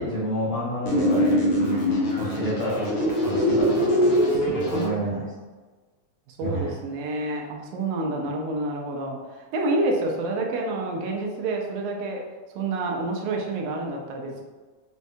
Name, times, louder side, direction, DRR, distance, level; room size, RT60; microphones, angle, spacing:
voice 1, 0.0-1.8 2.2-5.2 6.4-6.7, right 1 dB, 55° left, -9 dB, 1.4 m, -30 dB
sound 1, 0.9-4.9, equal, 80° left, 1.3 m, -22 dB
voice 2, 6.3-12.2 12.6-14.4, right 2 dB, 80° right, 1 dB, 2.0 m, -28 dB
6.1 x 2.3 x 2.6 m, 1.3 s
omnidirectional pair, 3.6 m